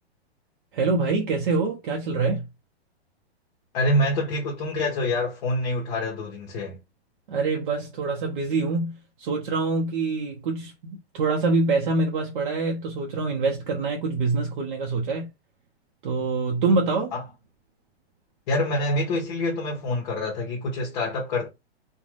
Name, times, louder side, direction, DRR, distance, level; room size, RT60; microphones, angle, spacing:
voice 1, 0.7-2.4 7.3-15.3 16.0-17.1, right 3 dB, 50° right, 0.6 m, -25 dB
voice 2, 3.7-6.8 17.1-17.2 18.5-21.5, left 1 dB, 40° left, 0.9 m, -26 dB
2.5 x 2.2 x 3.1 m
hypercardioid pair, 165°, 33 cm